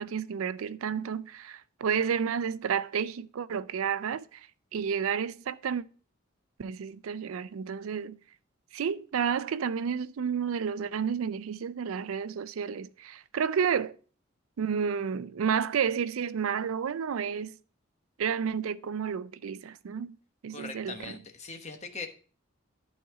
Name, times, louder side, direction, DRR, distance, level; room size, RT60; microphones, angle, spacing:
voice 1, 0.0-4.4 4.7-5.8 6.6-8.2 8.7-14.0 14.6-17.6 18.2-20.2 20.4-21.2, right 7 dB, 80° right, 0.4 m, -31 dB
voice 2, 20.5-22.1, left 3 dB, 35° left, 1.1 m, -40 dB
12.0 x 4.2 x 4.7 m
head